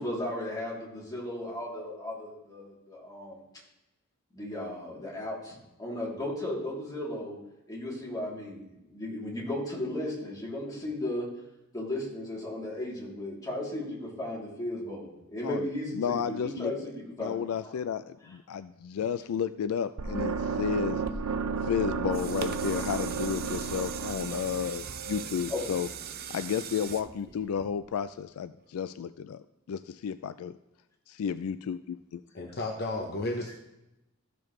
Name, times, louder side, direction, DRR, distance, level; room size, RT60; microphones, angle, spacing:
voice 1, 0.0-3.4 4.3-7.4 7.7-11.3 11.7-15.1 15.3-17.7 25.5-25.6, left 1 dB, 20° left, -6 dB, 3.1 m, -35 dB
voice 2, 15.9-16.7 17.2-21.0 21.6-25.9 26.3-30.5 31.1-32.2, left 7 dB, 80° left, 12 dB, 0.3 m, -32 dB
sound 1, 20.0-26.0, right 5 dB, 90° right, 0.6 m, -33 dB
sound 2, 21.8-28.1 28.7-28.8, right 8 dB, 45° right, 0.6 m, -41 dB
voice 3, 32.3-33.5, left 2 dB, 50° left, 1 dB, 0.9 m, -33 dB
14.0 x 6.9 x 3.2 m, 0.94 s
head